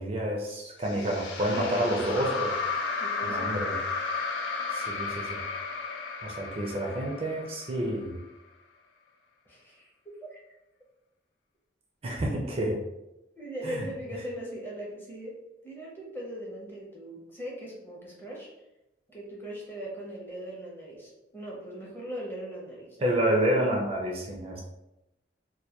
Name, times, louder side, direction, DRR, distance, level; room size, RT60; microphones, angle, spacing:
voice 1, 0.0-2.5 3.2-3.8 4.7-5.4 6.2-8.2 12.0-12.8 13.6-13.8 23.0-24.6, right 1 dB, 35° right, -1 dB, 0.4 m, -29 dB
sound 1, 0.8-8.1, left 4 dB, 85° left, 0.4 m, -33 dB
voice 2, 1.5-2.4 3.0-3.8 9.5-10.4 13.4-15.3 15.6-18.5 19.1-23.2, equal, 15° left, -4 dB, 0.6 m, -39 dB
2.2 x 2.1 x 2.8 m, 0.92 s
head